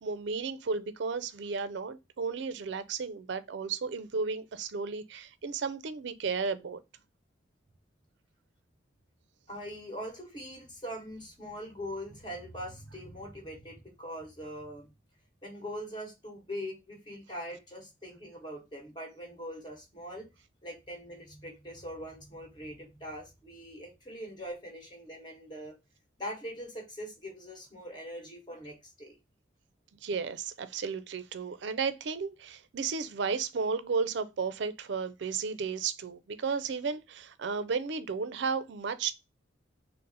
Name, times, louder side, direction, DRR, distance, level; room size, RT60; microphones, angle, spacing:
voice 1, 0.0-6.8 30.0-39.1, right 5 dB, 60° right, 0.4 m, -33 dB
voice 2, 9.5-14.9 15.4-20.3 20.6-25.8 26.2-29.2, equal, 25° left, 1.3 m, -42 dB
3.9 x 2.0 x 3.9 m
head